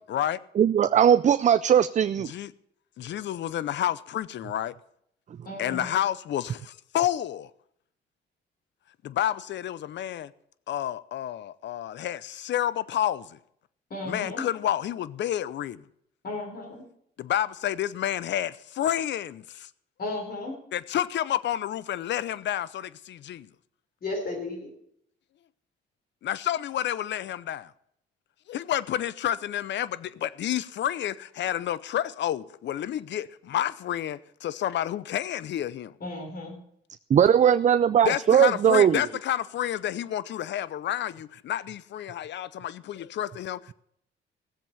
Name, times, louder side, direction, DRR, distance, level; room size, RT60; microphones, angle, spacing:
voice 1, 0.0-0.4 2.3-2.5 3.0-4.7 5.6-7.5 9.0-10.3 10.7-13.4 14.0-15.8 17.2-19.7 20.7-23.5 26.2-27.7 28.5-35.9 38.0-43.7, left 11 dB, 65° left, 0.7 m, -30 dB
voice 2, 0.6-2.3 37.1-39.0, right 9 dB, 40° right, 0.4 m, -19 dB
voice 3, 5.4-5.9 13.9-14.4 16.2-16.8 20.0-20.5 24.0-24.7 36.0-36.5, left 2 dB, 50° left, 4.6 m, -34 dB
16.5 x 7.7 x 6.9 m
cardioid pair, 90°, 20 cm